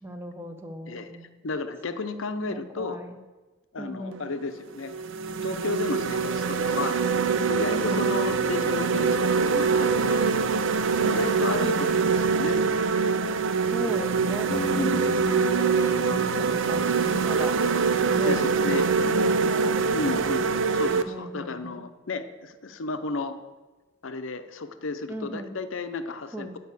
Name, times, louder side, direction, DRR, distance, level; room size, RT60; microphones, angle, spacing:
voice 1, 0.0-1.4 2.5-3.2 3.8-4.2 7.7-8.1 11.0-11.6 13.7-15.1 15.5-17.6 18.1-20.4 21.1-21.8 25.1-25.5 26.3-26.6, equal, 10° right, 6 dB, 0.7 m, -38 dB
voice 2, 1.4-3.0 3.7-4.9 5.4-10.3 10.7-12.6 14.7-15.0 18.2-18.9 19.9-23.4 24.0-26.6, left 3 dB, 65° left, 9 dB, 0.6 m, -33 dB
sound 1, 4.1-4.3 4.9-21.0, right 5 dB, 65° right, 0.5 m, -24 dB
sound 2, 14.5-20.3, left 1 dB, 10° left, 0.4 m, -37 dB
9.4 x 5.5 x 8.2 m, 1.2 s
head